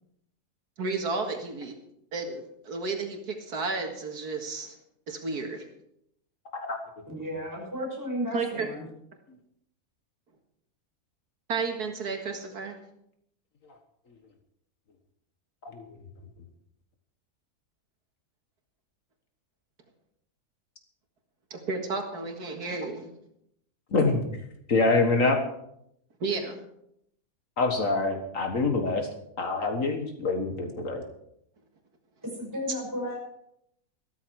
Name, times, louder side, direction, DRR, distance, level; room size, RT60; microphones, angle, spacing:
voice 1, 0.8-1.7 2.1-4.7 5.1-5.6 8.3-8.7 11.5-12.8 21.5-23.1 26.2-26.6, right 4 dB, 80° right, 3 dB, 2.4 m, -32 dB
voice 2, 7.1-8.9 32.3-33.2, equal, 10° right, -2 dB, 5.8 m, -33 dB
voice 3, 23.9-24.3 24.7-25.4 27.6-29.1 29.4-31.0, left 3 dB, 55° left, 4 dB, 1.9 m, -25 dB
14.0 x 13.5 x 4.7 m, 0.76 s
omnidirectional pair, 1.6 m